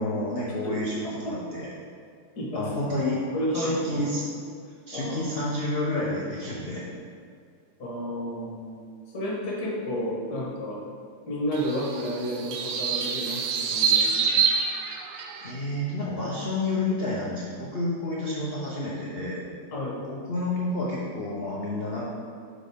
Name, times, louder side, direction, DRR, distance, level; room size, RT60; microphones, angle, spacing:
voice 1, 0.0-1.7 2.5-3.2 3.5-4.2 4.9-6.9 15.4-19.4 20.1-22.0, left 2 dB, 85° left, -5 dB, 0.5 m, -29 dB
voice 2, 1.0-1.4 2.4-2.7 3.3-4.0 4.9-5.2 7.8-8.8 9.1-10.8 11.3-14.4 19.7-20.0, equal, 50° left, -5 dB, 2.1 m, -31 dB
sound 1, 11.5-15.5, right 6 dB, 80° right, 1.5 m, -26 dB
7.6 x 5.0 x 3.6 m, 2.2 s
omnidirectional pair, 2.4 m